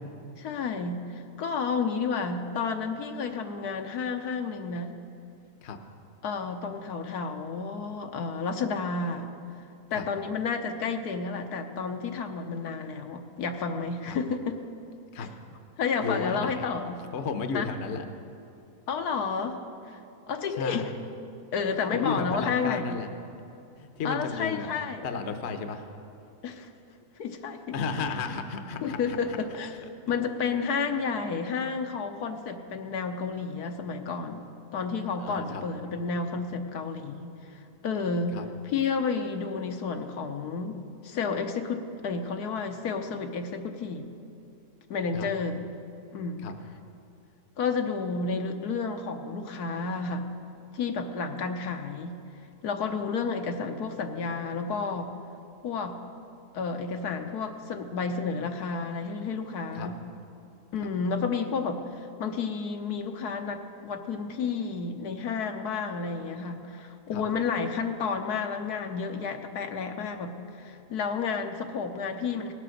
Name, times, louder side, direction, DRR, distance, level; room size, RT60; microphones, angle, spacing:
voice 1, 0.4-4.9 6.2-9.3 9.9-14.6 15.2-15.3 15.8-16.9 17.5-17.7 18.9-19.6 19.9-20.0 20.3-20.9 21.5-23.0 24.0-25.0 26.4-26.7 27.2-27.7 28.8-29.7 30.1-37.3 37.8-38.4 38.6-44.0 44.9-45.7 46.1-46.5 47.6-50.3 50.7-52.2 52.6-55.1 55.6-56.0 56.5-60.0 60.7-72.5, left 5 dB, 80° left, 5 dB, 1.4 m, -31 dB
voice 2, 16.0-16.7 17.1-18.0 20.6-20.9 21.9-23.1 23.8-24.7 25.0-25.9 27.7-29.2 35.2-35.6 38.3-38.5 45.1-45.3 46.4-46.5 59.7-59.9 67.1-67.2, left 5 dB, 50° left, 7 dB, 1.0 m, -33 dB
19.0 x 7.9 x 6.5 m, 2.6 s
omnidirectional pair, 1.6 m